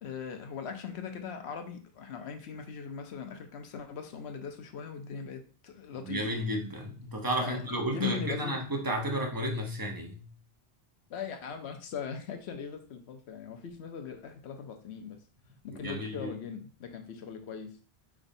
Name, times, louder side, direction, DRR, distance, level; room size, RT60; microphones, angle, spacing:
voice 1, 0.0-6.3 7.4-7.6 7.9-8.6 11.1-15.2 15.6-17.8, left 6 dB, 80° left, 6 dB, 1.0 m, -40 dB
voice 2, 5.9-10.3 15.7-16.3, right 1 dB, 25° right, 2 dB, 0.7 m, -32 dB
5.2 x 3.5 x 2.6 m, 0.40 s
omnidirectional pair, 1.1 m